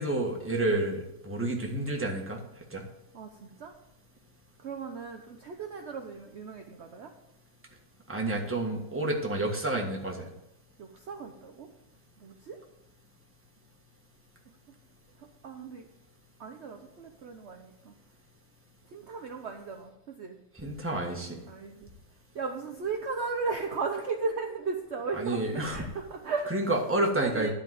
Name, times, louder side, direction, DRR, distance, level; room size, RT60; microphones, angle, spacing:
voice 1, 0.0-2.4 2.7-2.8 8.1-10.2 20.6-21.4 25.2-25.8 26.5-27.5, right 2 dB, 5° right, 0 dB, 1.3 m, -29 dB
voice 2, 3.1-3.7 4.6-7.1 10.8-11.7 12.2-12.6 15.2-15.9 16.4-17.9 18.9-20.4 21.5-21.9 22.3-26.5 27.2-27.5, right 4 dB, 60° right, 3 dB, 0.7 m, -36 dB
11.0 x 4.9 x 7.6 m, 0.88 s
omnidirectional pair, 2.1 m